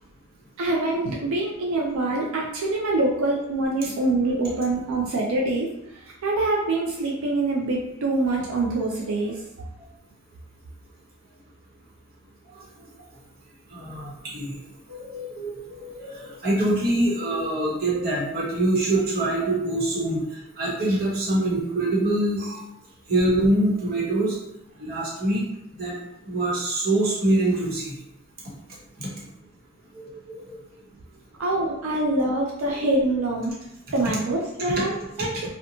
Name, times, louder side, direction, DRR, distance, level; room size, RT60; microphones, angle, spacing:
voice 1, 0.6-5.7 6.0-9.4 31.4-33.5 33.9-35.5, right 2 dB, 90° right, -2 dB, 0.4 m, -25 dB
voice 2, 13.7-14.6 14.9-20.2 20.6-22.6 23.1-24.4 24.8-25.4 25.8-25.9 26.3-28.0 29.0-29.1 29.9-30.6 32.8-32.9 35.2-35.3, right 1 dB, 50° right, -5 dB, 0.9 m, -24 dB
2.8 x 2.1 x 2.7 m, 0.86 s
head